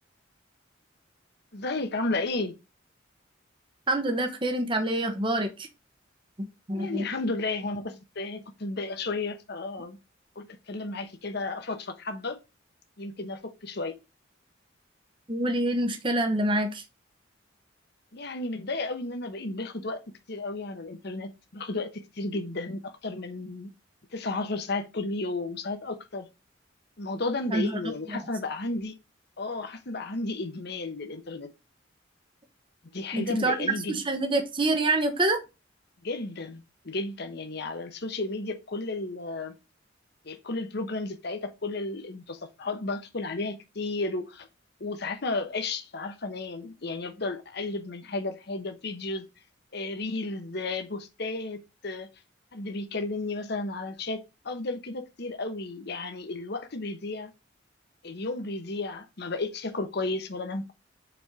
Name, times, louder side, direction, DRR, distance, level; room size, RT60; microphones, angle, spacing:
voice 1, 1.5-2.6 6.7-10.0 10.4-12.4 13.0-14.0 18.1-20.0 20.3-23.7 24.1-26.3 27.0-29.0 29.4-31.5 32.9-34.0 36.0-39.5 40.2-44.5 44.8-49.3 49.7-52.1 52.5-57.3 58.0-60.7, left 2 dB, 60° left, 1.0 m, -33 dB
voice 2, 3.9-5.7 6.7-7.1 15.3-16.8 27.5-27.7 28.1-28.2 33.1-35.4, right 2 dB, 25° right, 1.0 m, -26 dB
5.2 x 4.4 x 4.6 m
head